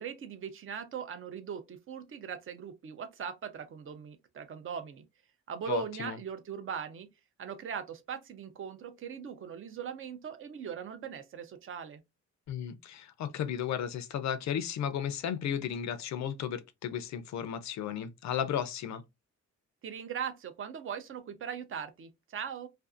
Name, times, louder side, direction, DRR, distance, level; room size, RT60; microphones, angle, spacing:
voice 1, 0.0-5.1 5.5-7.1 7.4-12.0 19.8-22.7, right 7 dB, 45° right, 0.5 m, -40 dB
voice 2, 5.7-6.2 12.5-19.0, left 9 dB, 70° left, 0.5 m, -34 dB
2.5 x 2.3 x 2.4 m
cardioid pair, 145°, 29 cm